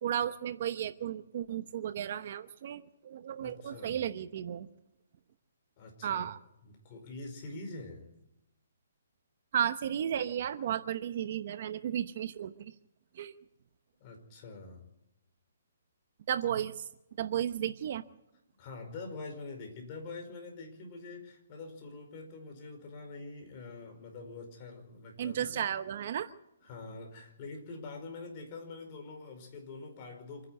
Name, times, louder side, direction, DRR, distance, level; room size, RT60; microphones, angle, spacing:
voice 1, 0.0-4.7 6.0-6.4 9.5-12.7 13.2-13.3 16.3-16.8 17.2-18.0 25.2-26.3, right 10 dB, 45° right, 11 dB, 0.9 m, -34 dB
voice 2, 3.4-4.0 5.8-6.3 6.6-8.1 14.0-14.9 18.6-25.6 26.6-30.5, left 3 dB, 30° left, 4 dB, 5.1 m, -45 dB
27.0 x 10.5 x 9.4 m, 0.87 s
hypercardioid pair, 165°, 0 cm